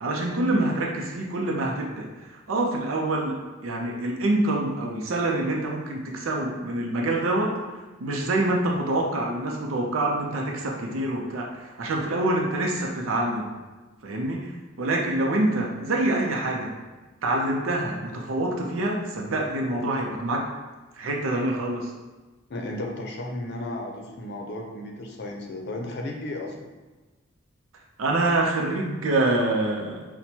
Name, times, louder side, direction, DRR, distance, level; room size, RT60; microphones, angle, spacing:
voice 1, 0.0-7.5 8.0-13.5 14.0-14.5 14.8-16.7 17.2-20.4 21.0-21.9 28.0-30.0, right 2 dB, 90° right, 0 dB, 0.5 m, -26 dB
voice 2, 22.5-26.7, left 1 dB, 55° left, 2 dB, 0.6 m, -34 dB
5.9 x 2.1 x 2.8 m, 1.2 s
head